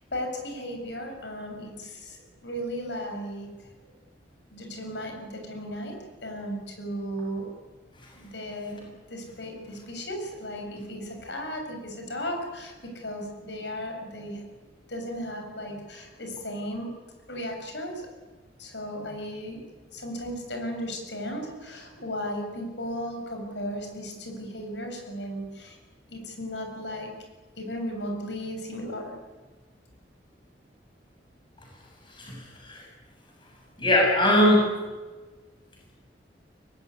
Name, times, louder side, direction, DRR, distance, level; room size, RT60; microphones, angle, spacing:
voice 1, 0.1-3.5 4.5-7.5 8.2-14.4 14.9-16.9 17.3-18.0 18.6-19.6 19.9-25.8 26.1-27.1 27.6-29.1, equal, 75° left, 3 dB, 7.4 m, -35 dB
voice 2, 32.1-32.8 33.8-34.7, left 1 dB, 25° left, -1 dB, 7.6 m, -21 dB
24.0 x 19.0 x 9.8 m, 1.3 s
head